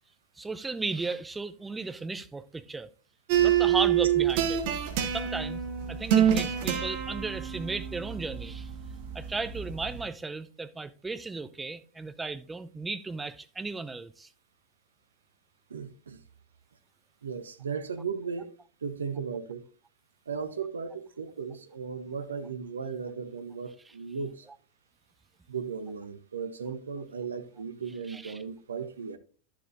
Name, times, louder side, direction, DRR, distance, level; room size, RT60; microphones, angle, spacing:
voice 1, 0.4-2.9 3.4-4.6 5.1-5.6 5.9-8.7 9.1-14.3 23.9-24.0 28.1-28.4, right 3 dB, 10° right, 0.6 m, -35 dB
sound 1, 3.3-10.0, right 10 dB, 50° right, 1.5 m, -27 dB
voice 2, 15.7-16.2 17.2-18.5 18.8-19.7 20.3-24.5 25.5-29.2, right 6 dB, 70° right, 0.9 m, -36 dB
11.5 x 7.2 x 2.6 m
figure-of-eight pair, 90°, 0 cm